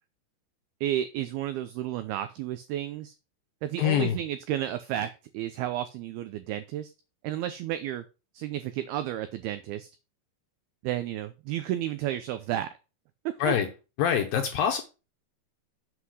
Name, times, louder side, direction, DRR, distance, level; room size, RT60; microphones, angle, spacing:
voice 1, 0.8-3.1 3.6-6.9 7.2-8.0 8.3-9.9 10.8-12.7 13.5-13.6, right 12 dB, 85° right, 2.2 m, -32 dB
voice 2, 3.8-4.2 13.4-13.7 14.0-14.8, left 9 dB, 75° left, 2.3 m, -25 dB
8.0 x 5.8 x 6.2 m
omnidirectional pair, 5.2 m